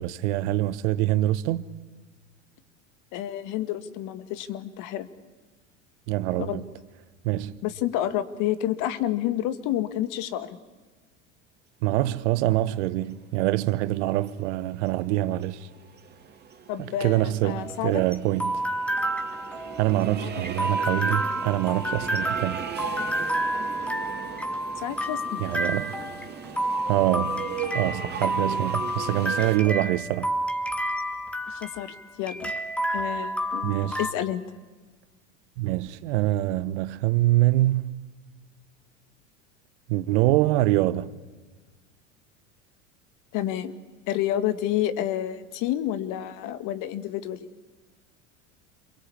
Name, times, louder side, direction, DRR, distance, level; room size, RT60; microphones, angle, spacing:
voice 1, 0.0-1.6 6.1-6.6 7.2-7.6 11.8-15.7 16.8-18.6 19.8-22.6 25.4-25.9 26.9-27.5 27.7-30.3 33.6-34.0 35.6-37.9 39.9-41.1, right 16 dB, 65° right, 1.2 m, -25 dB
voice 2, 3.1-5.1 6.4-6.6 7.6-10.6 16.7-18.0 20.2-20.3 24.8-25.4 31.5-32.5 32.9-33.7 34.0-34.4 43.3-43.8 44.1-47.5, left 12 dB, 55° left, 1.9 m, -29 dB
sound 1, 13.7-29.6, right 6 dB, 25° right, 3.5 m, -38 dB
sound 2, 17.4-34.1, right 1 dB, 5° left, 2.5 m, -30 dB
27.5 x 22.5 x 8.6 m
hypercardioid pair, 90°, 37 cm